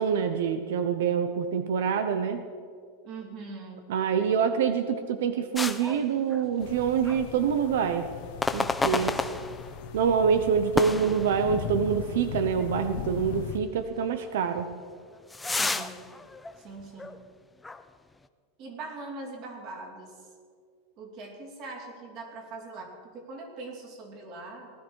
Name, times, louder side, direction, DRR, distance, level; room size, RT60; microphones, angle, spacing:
voice 1, 0.0-2.4 3.9-8.1 8.5-9.2 9.9-14.7, right 7 dB, 85° right, 9 dB, 0.9 m, -26 dB
voice 2, 3.0-3.8 8.9-9.5 15.4-16.0 16.6-17.1 18.6-20.3 21.0-24.7, right 3 dB, 35° right, 2 dB, 2.7 m, -42 dB
sound 1, 5.5-6.8 7.0-7.3 8.4-9.9 10.7-11.9 12.3-12.4 13.1-13.2 14.6-17.3 17.6-17.8, left 3 dB, 5° left, 0.4 m, -31 dB
sound 2, 6.6-13.6, left 9 dB, 60° left, 0.9 m, -38 dB
18.5 x 12.5 x 4.7 m, 2.1 s
supercardioid pair, 175°, 0 cm